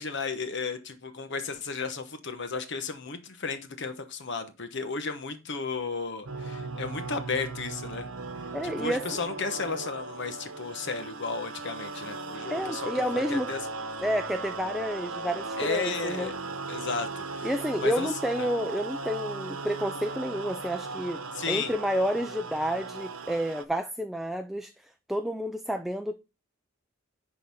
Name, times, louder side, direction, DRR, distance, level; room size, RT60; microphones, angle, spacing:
voice 1, 0.0-8.1 8.6-13.6 15.6-16.3 16.7-17.5 17.8-18.1 18.4-18.5 21.3-21.7, left 4 dB, 60° left, 1.1 m, -34 dB
sound 1, 6.3-23.6, right 3 dB, 85° right, 1.0 m, -37 dB
voice 2, 8.5-9.0 12.5-13.5 14.0-16.3 17.4-21.2 21.5-26.2, equal, ahead, 0.4 m, -30 dB
10.5 x 4.0 x 5.3 m
head